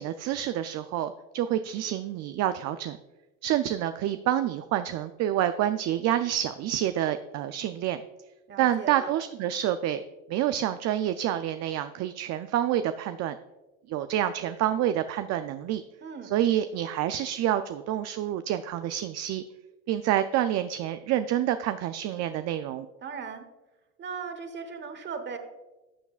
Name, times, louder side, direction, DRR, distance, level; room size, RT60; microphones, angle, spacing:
voice 1, 0.0-3.0 3.4-8.0 8.6-10.0 10.3-13.4 13.9-15.8 16.2-19.4 19.9-22.9, right 11 dB, 50° right, 10 dB, 0.4 m, -28 dB
voice 2, 8.5-9.1 16.0-16.3 23.0-23.5 24.0-25.4, right 5 dB, 30° right, 8 dB, 1.1 m, -37 dB
12.5 x 7.0 x 2.4 m, 1.1 s
supercardioid pair, 110°, 35 cm